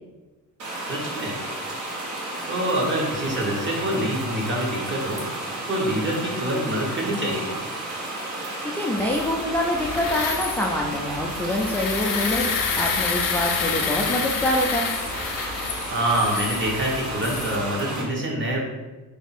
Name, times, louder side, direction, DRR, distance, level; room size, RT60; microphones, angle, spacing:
sound 1, 0.6-18.0, right 2 dB, 60° right, 1.2 m, -32 dB
voice 1, 0.9-1.4 2.5-5.2 5.7-7.6 15.9-18.6, right 1 dB, 35° right, -2 dB, 1.1 m, -26 dB
voice 2, 8.7-14.9, left 1 dB, 5° left, -2 dB, 0.3 m, -25 dB
sound 2, 9.0-17.6, left 6 dB, 75° left, 0.6 m, -29 dB
3.5 x 2.7 x 4.1 m, 1.2 s
cardioid pair, 105°, 34 cm